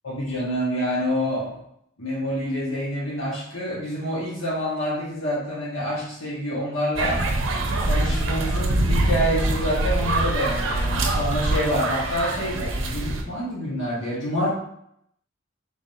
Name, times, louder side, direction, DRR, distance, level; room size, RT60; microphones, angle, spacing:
voice 1, 0.0-1.6 2.0-7.2 7.8-14.5, equal, 90° left, -7 dB, 1.5 m, -27 dB
sound 1, 6.9-13.2, right 2 dB, 85° right, 0.6 m, -24 dB
4.0 x 3.6 x 2.6 m, 0.74 s
head